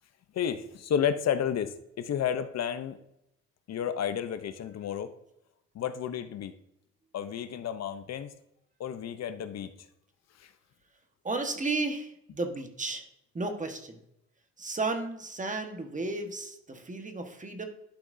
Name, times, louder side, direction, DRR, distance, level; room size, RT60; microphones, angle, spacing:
voice 1, 0.3-3.0 3.7-5.1 5.7-6.5 7.1-8.3 8.8-9.7 10.4-10.5, left 8 dB, 60° left, 11 dB, 0.8 m, -31 dB
voice 2, 11.2-13.1 13.3-14.0 14.6-17.6, right 3 dB, 25° right, 6 dB, 1.4 m, -33 dB
11.5 x 5.9 x 2.7 m, 0.81 s
cardioid pair, 90°, 30 cm